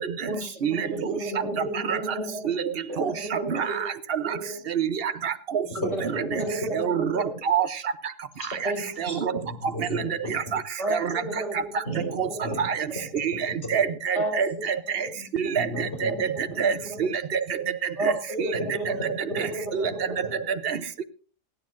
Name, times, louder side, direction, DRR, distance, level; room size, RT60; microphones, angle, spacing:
voice 1, 0.3-2.5 2.9-3.9 4.2-4.6 5.7-7.3 8.6-9.4 10.8-11.7 12.0-12.5 12.9-13.0 14.1-14.7 15.0-17.0 18.0-20.4, right 1 dB, 70° right, 5.3 m, -33 dB
voice 2, 5.8-6.1 6.6-6.7 8.4-8.5 9.5-10.5 11.8-12.1 12.4-12.5 15.6-16.1 19.0-19.4, equal, 60° left, 4.4 m, -33 dB
voice 3, 6.7-7.7 9.2-9.3 10.5-10.6 10.9-11.1 12.2-12.3 12.7-12.8 13.2-13.3 13.7-14.8 15.6-15.7 16.0-16.1 16.6-16.7 17.0-17.4 18.4-18.5 19.7-19.9 20.6-20.8, right 7 dB, 55° right, 0.9 m, -25 dB
27.0 x 9.5 x 2.6 m
omnidirectional pair, 1.3 m